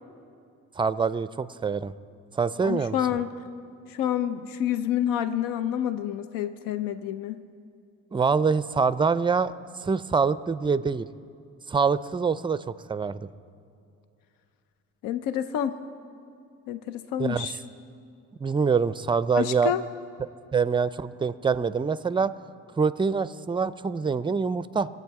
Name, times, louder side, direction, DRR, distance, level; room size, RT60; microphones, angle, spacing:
voice 1, 0.8-1.9 2.3-3.0 8.1-9.5 9.8-11.1 11.7-12.6 12.9-13.2 17.2-17.5 18.4-19.7 20.5-22.3 22.8-24.9, right 5 dB, 15° right, 15 dB, 0.4 m, -25 dB
voice 2, 2.6-3.3 3.9-7.4 15.0-15.7 16.7-17.6 19.3-19.8, left 10 dB, 85° left, 11 dB, 0.6 m, -28 dB
23.0 x 8.0 x 4.8 m, 2.5 s
cardioid pair, 80°, 33 cm